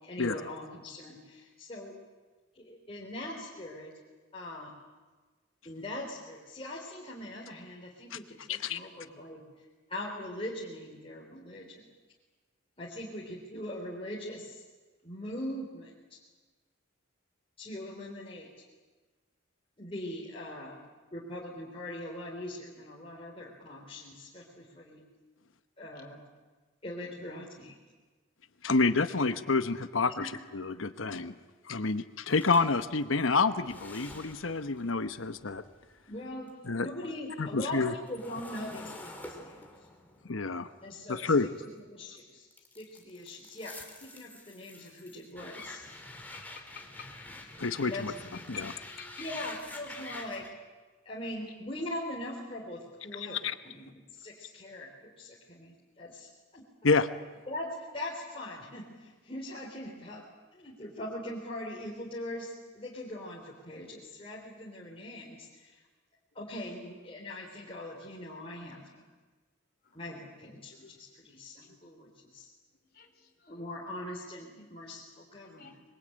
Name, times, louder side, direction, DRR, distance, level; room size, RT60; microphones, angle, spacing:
voice 1, 0.0-1.9 2.6-3.9 4.3-4.7 5.6-9.4 9.9-11.9 12.8-14.6 15.0-15.9 17.6-18.5 19.8-20.8 21.1-25.0 25.8-26.2 26.8-27.8 30.2-30.3 36.1-39.7 40.8-41.5 41.9-42.5 42.8-45.9 47.9-48.1 49.2-50.5 51.0-53.4 53.7-56.9 57.5-60.2 60.5-65.8 66.3-69.0 69.9-72.5 73.5-75.8, left 1 dB, 30° left, -4 dB, 3.7 m, -41 dB
voice 2, 8.5-8.8 28.6-30.2 30.5-31.3 31.7-35.6 36.7-36.9 37.4-37.9 40.3-40.7 41.1-41.5 47.6-48.1 48.5-48.7 53.2-53.5 56.8-57.1, left 4 dB, 80° left, 10 dB, 1.0 m, -28 dB
sound 1, 32.4-36.7 37.0-41.9 42.5-50.5, left 2 dB, 10° left, 2.9 m, -48 dB
voice 3, 46.3-47.1 48.5-49.3 70.8-70.9 71.6-71.8 72.9-73.1 74.4-74.7 75.6-75.7, left 6 dB, 55° left, 3 dB, 3.9 m, -50 dB
25.5 x 22.5 x 8.9 m, 1.3 s
head